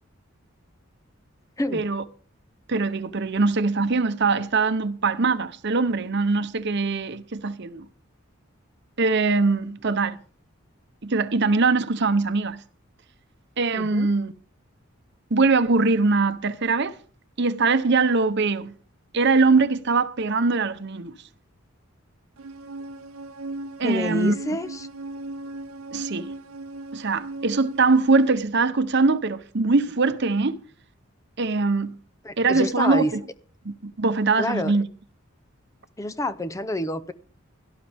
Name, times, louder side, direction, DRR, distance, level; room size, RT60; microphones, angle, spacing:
voice 1, 1.7-2.0 2.7-7.8 9.0-10.2 11.0-12.6 13.6-14.3 15.3-17.0 17.4-18.7 19.1-21.1 23.8-24.3 25.9-26.3 26.9-30.6 31.4-31.9 32.4-33.2 33.6-34.8, right 3 dB, 55° right, 0.8 m, -22 dB
voice 2, 13.7-14.1 23.8-24.9 32.2-33.1 34.4-34.7 36.0-37.1, left 1 dB, 15° left, 0.5 m, -28 dB
sound 1, 22.4-28.3, right 2 dB, 85° right, 0.7 m, -37 dB
17.0 x 12.0 x 3.5 m
head